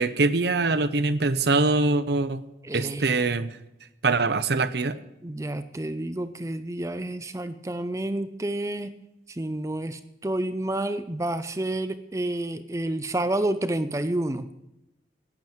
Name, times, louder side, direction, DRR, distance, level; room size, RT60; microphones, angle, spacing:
voice 1, 0.0-2.4 2.7-3.5 4.0-5.0, right 3 dB, 60° right, 13 dB, 0.7 m, -23 dB
voice 2, 2.6-3.2 5.2-8.9 9.3-14.5, right 1 dB, 15° right, 11 dB, 0.5 m, -29 dB
11.5 x 8.9 x 7.8 m, 0.90 s
head